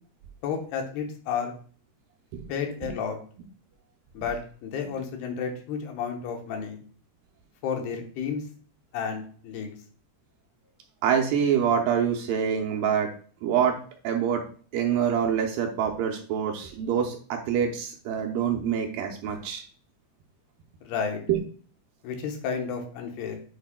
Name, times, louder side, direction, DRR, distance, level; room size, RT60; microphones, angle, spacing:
voice 1, 0.4-1.5 2.5-3.2 4.1-6.8 7.6-8.4 8.9-9.8 20.8-21.2 22.0-23.4, left 6 dB, 85° left, 3 dB, 3.1 m, -31 dB
voice 2, 11.0-13.1 13.4-13.8 14.0-14.5 14.7-19.6 21.3-21.4, right 8 dB, 75° right, 2 dB, 2.2 m, -25 dB
10.5 x 5.0 x 2.2 m, 0.43 s
omnidirectional pair, 4.4 m